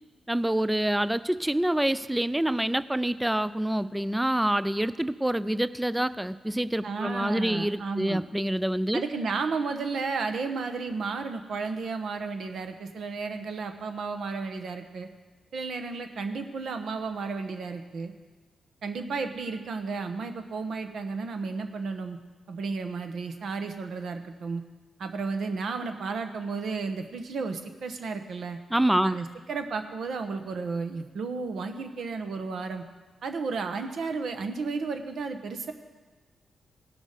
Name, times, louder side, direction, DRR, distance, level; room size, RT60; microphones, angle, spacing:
voice 1, 0.3-9.0 28.7-29.2, right 1 dB, 10° right, 16 dB, 0.3 m, -26 dB
voice 2, 6.8-8.2 8.9-15.1 15.5-18.1 18.8-22.2 22.5-24.6 25.0-28.6 29.0-32.8 33.2-35.7, right 4 dB, 70° right, 7 dB, 1.0 m, -33 dB
17.0 x 6.2 x 5.0 m, 1.3 s
supercardioid pair, 55°, 0 cm